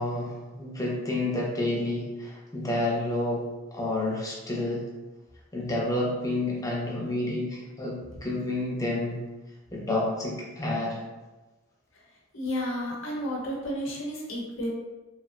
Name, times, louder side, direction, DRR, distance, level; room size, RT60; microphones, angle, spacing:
voice 1, 0.0-3.5 3.7-4.8 5.5-9.2 9.7-11.0, left 2 dB, 15° left, -4 dB, 0.6 m, -29 dB
voice 2, 12.3-14.7, equal, 70° left, -2 dB, 0.7 m, -32 dB
3.0 x 2.5 x 2.4 m, 1.1 s
head